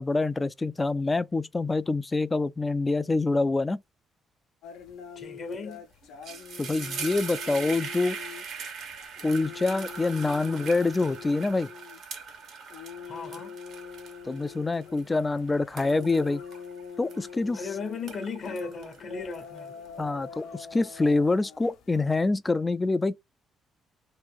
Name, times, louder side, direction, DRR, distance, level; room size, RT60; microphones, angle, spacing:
voice 1, 0.0-3.8 6.6-8.2 9.2-11.7 14.2-16.4 17.0-17.6 20.0-23.2, left 3 dB, 20° left, 0.3 m, -26 dB
sound 1, 4.6-22.1, left 7 dB, 90° left, 0.8 m, -45 dB
voice 2, 5.2-5.8 13.0-13.5 17.5-19.8, left 4 dB, 55° left, 0.8 m, -36 dB
sound 2, 5.5-5.7 6.0-17.6 17.9-19.9, right 6 dB, 70° right, 1.3 m, -41 dB
3.1 x 2.5 x 3.4 m
cardioid pair, 90°, 0 cm